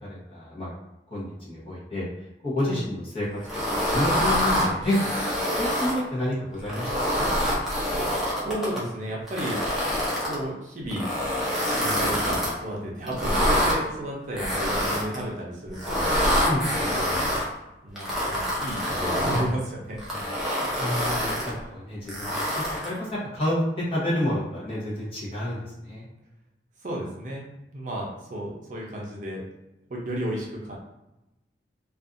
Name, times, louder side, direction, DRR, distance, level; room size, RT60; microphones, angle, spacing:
voice 1, 0.0-0.7 1.1-2.0 2.4-3.3 3.7-5.0 5.6-7.3 16.4-16.8 20.8-22.3 22.8-26.1, left 1 dB, 30° left, -7 dB, 0.9 m, -29 dB
sound 1, 3.4-6.0 6.6-8.8 9.3-10.4 10.9-12.5 13.1-13.8 14.4-15.2 15.7-17.4 18.0-19.5 20.0-21.5 22.1-23.0, equal, ahead, 0.6 m, -26 dB
voice 2, 8.4-9.6 10.3-11.1 11.8-16.1 16.6-17.3 17.8-20.3 21.5-21.8 26.8-27.5 27.7-29.4 29.9-30.7, right 1 dB, 45° right, -3 dB, 0.6 m, -33 dB
2.6 x 2.4 x 2.5 m, 0.96 s
head